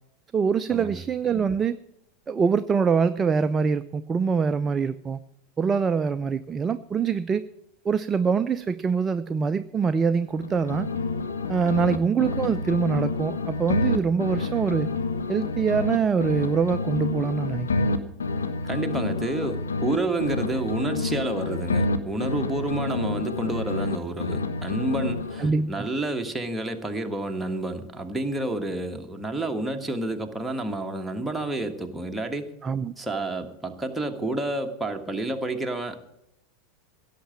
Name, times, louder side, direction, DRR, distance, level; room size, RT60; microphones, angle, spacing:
voice 1, 0.3-1.8 2.3-5.2 5.6-7.4 7.8-10.9 11.5-14.9 15.3-18.0 25.4-25.9 32.6-32.9, right 5 dB, 20° right, 12 dB, 0.4 m, -24 dB
sound 1, 10.3-12.0 12.2-20.0 20.2-24.0 24.2-25.6, left 3 dB, 70° left, 0.9 m, -28 dB
voice 2, 11.6-12.0 18.6-32.5 33.0-36.0, right 2 dB, 5° right, 3 dB, 1.4 m, -29 dB
16.5 x 6.7 x 7.4 m, 0.83 s
figure-of-eight pair, 85°, 0 cm